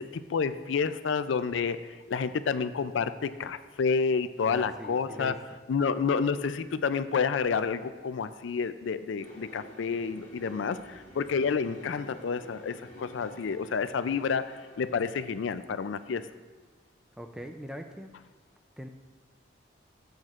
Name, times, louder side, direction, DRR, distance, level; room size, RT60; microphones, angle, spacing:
voice 1, 0.0-1.8 2.1-5.3 5.7-16.2, left 5 dB, 75° left, 12 dB, 0.4 m, -29 dB
voice 2, 4.5-5.4 17.2-18.1 18.8-18.9, equal, 5° right, 5 dB, 0.4 m, -41 dB
sound 1, 9.2-15.8, left 1 dB, 35° left, 1.9 m, -50 dB
14.5 x 8.0 x 2.5 m, 1.5 s
head